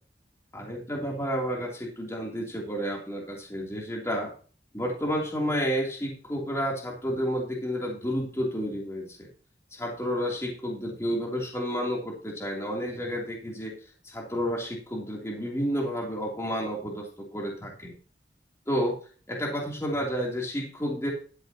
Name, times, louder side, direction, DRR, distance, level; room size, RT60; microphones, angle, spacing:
voice 1, 0.5-4.3 4.7-9.3 9.7-13.8 14.0-17.9 18.7-19.0 19.3-21.1, equal, 15° left, -3 dB, 3.1 m, -31 dB
13.0 x 9.7 x 2.9 m, 0.38 s
head